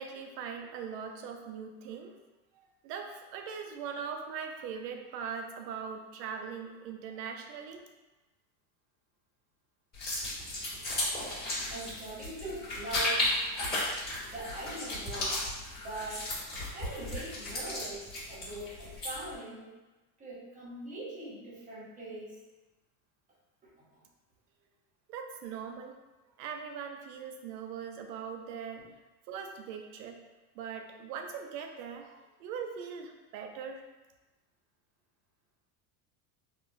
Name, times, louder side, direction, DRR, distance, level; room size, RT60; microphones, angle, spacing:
voice 1, 0.0-2.1 2.6-7.8 25.1-25.9 26.4-28.8 29.3-30.2 30.5-33.8, right 6 dB, 80° right, 4 dB, 0.6 m, -41 dB
sound 1, 9.9-19.3, left 1 dB, 20° left, 1.3 m, -35 dB
voice 2, 11.7-13.5 14.3-15.4 15.8-16.3 16.7-19.7 20.2-22.4 23.6-24.0 28.8-28.9, right 2 dB, 15° right, -6 dB, 0.7 m, -42 dB
3.7 x 2.3 x 2.5 m, 1.1 s
supercardioid pair, 145°, 49 cm